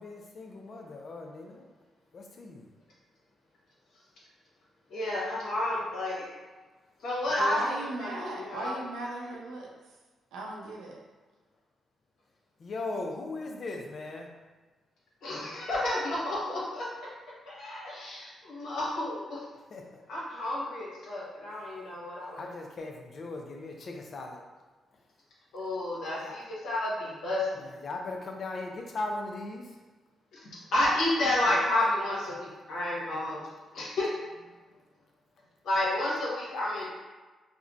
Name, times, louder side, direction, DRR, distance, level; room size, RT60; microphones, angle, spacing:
voice 1, 0.3-1.6 2.1-2.7 12.6-14.3 19.7-20.0 22.4-24.4 26.2-26.4 27.6-29.8, left 2 dB, 55° left, 2 dB, 0.5 m, -38 dB
voice 2, 4.9-6.3 7.0-8.8 15.2-16.9 17.5-19.4 20.1-22.5 25.5-27.6 30.4-33.4 33.7-34.1 35.6-36.9, left 1 dB, 75° left, -6 dB, 1.0 m, -31 dB
voice 3, 7.4-9.7 10.3-10.9, right 1 dB, 90° right, -2 dB, 0.6 m, -37 dB
3.6 x 2.2 x 2.3 m, 1.3 s
supercardioid pair, 55°, 0 cm